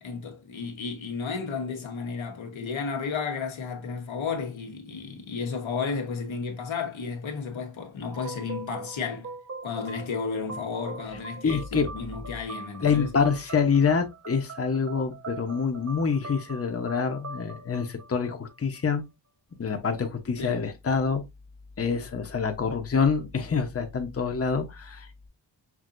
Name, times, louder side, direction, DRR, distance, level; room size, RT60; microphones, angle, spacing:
voice 1, 0.0-9.3 9.6-13.1 20.4-20.6, left 5 dB, 85° left, 1.3 m, -33 dB
sound 1, 8.1-18.8, right 3 dB, 35° right, 0.9 m, -42 dB
voice 2, 11.4-11.9 12.8-19.0 19.6-21.2 21.8-25.3, left 5 dB, 30° left, 0.9 m, -26 dB
6.0 x 2.8 x 2.5 m
wide cardioid pair, 75°, 46 cm